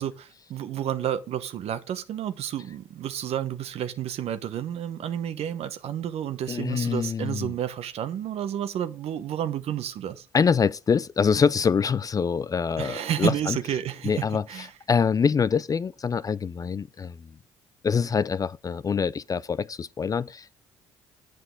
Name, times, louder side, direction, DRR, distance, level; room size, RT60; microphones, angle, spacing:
voice 1, 0.0-10.3 12.8-14.7, right 10 dB, 60° right, 0.9 m, -31 dB
voice 2, 6.5-7.5 10.3-13.6 14.0-17.3 17.8-20.5, left 6 dB, 30° left, 0.4 m, -25 dB
7.9 x 7.5 x 3.7 m
hypercardioid pair, 60°, 12 cm